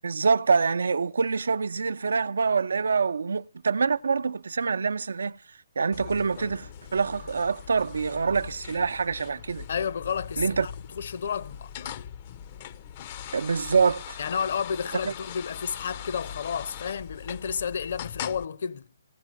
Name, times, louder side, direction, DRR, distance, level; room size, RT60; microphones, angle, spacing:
voice 1, 0.0-5.4 5.8-9.6 10.4-10.7 13.3-14.2 15.0-15.1, right 5 dB, 75° right, 0.6 m, -25 dB
sound 1, 5.9-18.4, left 9 dB, 40° left, 0.6 m, -41 dB
voice 2, 9.7-11.9 14.2-18.9, left 7 dB, 60° left, 1.0 m, -31 dB
16.0 x 8.1 x 7.4 m
hypercardioid pair, 140°, 0 cm